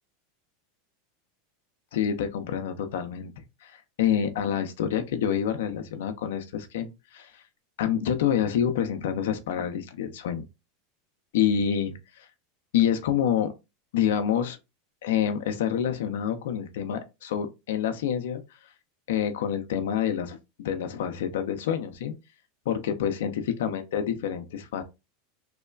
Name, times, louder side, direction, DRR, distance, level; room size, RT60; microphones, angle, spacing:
voice 1, 1.9-3.3 3.6-7.4 7.8-10.4 11.3-12.3 12.7-13.5 13.9-14.6 15.0-18.4 19.1-22.1 22.7-23.3 23.6-24.8, left 9 dB, 80° left, 0.4 m, -27 dB
3.1 x 2.1 x 2.3 m
supercardioid pair, 120°, 0 cm